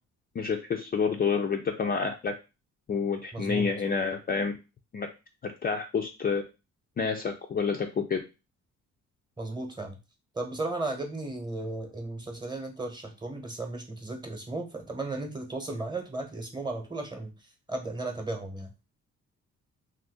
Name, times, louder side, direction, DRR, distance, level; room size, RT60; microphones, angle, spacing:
voice 1, 0.4-2.3 2.9-4.5 4.9-5.1 5.4-6.4 7.0-8.2, left 5 dB, 30° left, 3 dB, 0.4 m, -28 dB
voice 2, 3.3-3.7 9.4-10.0 10.3-18.7, right 2 dB, 15° right, 4 dB, 0.9 m, -35 dB
2.6 x 2.3 x 3.5 m, 0.28 s
cardioid pair, 90°, 30 cm